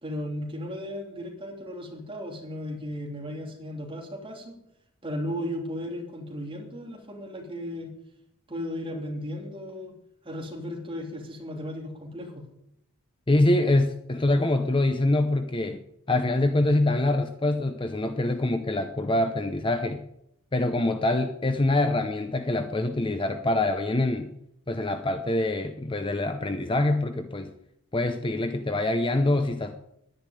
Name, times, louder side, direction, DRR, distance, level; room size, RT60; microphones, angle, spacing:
voice 1, 0.0-4.6 5.0-7.9 8.5-10.0 10.2-12.5, equal, 25° right, 0 dB, 3.4 m, -35 dB
voice 2, 13.3-15.8 16.1-20.0 20.5-24.3 24.7-27.5 27.9-29.8, left 2 dB, 20° left, 8 dB, 0.7 m, -25 dB
10.5 x 10.5 x 9.1 m, 0.78 s
head